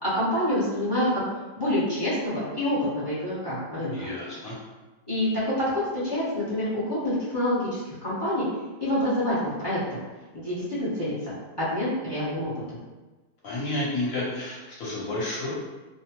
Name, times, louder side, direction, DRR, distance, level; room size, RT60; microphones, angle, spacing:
voice 1, 0.0-4.1 5.1-8.5 8.8-10.0 10.3-11.1 11.6-12.8, left 1 dB, 20° left, -11 dB, 0.7 m, -27 dB
voice 2, 3.9-4.6 13.4-15.5, left 1 dB, 60° left, -6 dB, 1.2 m, -31 dB
2.7 x 2.1 x 2.9 m, 1.2 s
omnidirectional pair, 1.8 m